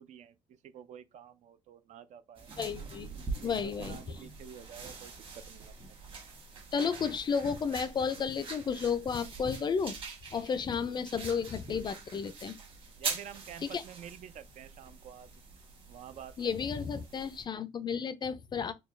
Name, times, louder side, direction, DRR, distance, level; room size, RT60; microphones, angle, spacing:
voice 1, 0.0-2.5 3.4-5.7 6.1-6.2 13.0-15.3 15.9-16.7 17.1-17.2, right 9 dB, 55° right, 0.5 m, -49 dB
sound 1, 2.4-17.4, right 4 dB, 35° right, 1.4 m, -44 dB
voice 2, 2.6-3.1 3.4-4.0 6.7-10.0 10.3-12.6 13.7-13.8 16.4-18.7, left 6 dB, 30° left, 0.4 m, -32 dB
4.5 x 2.2 x 3.2 m
cardioid pair, 145°, 14 cm